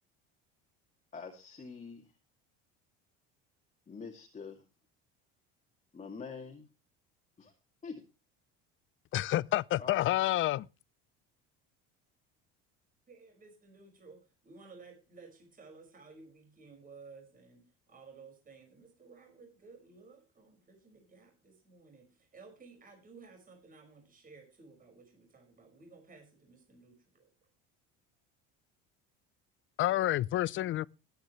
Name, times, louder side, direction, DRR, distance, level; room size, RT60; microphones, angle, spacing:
voice 1, 1.1-2.1 3.9-4.6 5.9-6.7 7.4-7.5 7.8-8.0 9.8-10.1, left 5 dB, 25° left, 2.4 m, -45 dB
voice 2, 9.1-10.7 29.8-30.8, left 15 dB, 45° left, 0.6 m, -29 dB
voice 3, 13.1-27.3, right 4 dB, 30° right, 5.6 m, -55 dB
20.0 x 9.3 x 3.2 m
supercardioid pair, 115°, 29 cm